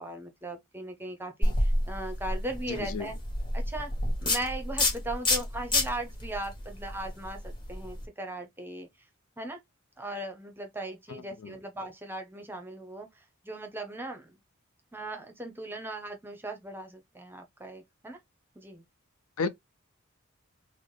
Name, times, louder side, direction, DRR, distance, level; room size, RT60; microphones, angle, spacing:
voice 1, 0.0-3.2 3.5-3.9 4.2-8.9 9.4-9.6 10.0-14.3 14.9-18.2 18.6-18.8, right 1 dB, 10° right, 0.6 m, -38 dB
sound 1, 1.4-8.0, left 1 dB, 20° left, 1.2 m, -29 dB
voice 2, 2.7-3.1 11.4-11.5 19.4-19.5, left 4 dB, 80° left, 0.5 m, -31 dB
3.9 x 2.0 x 3.2 m
head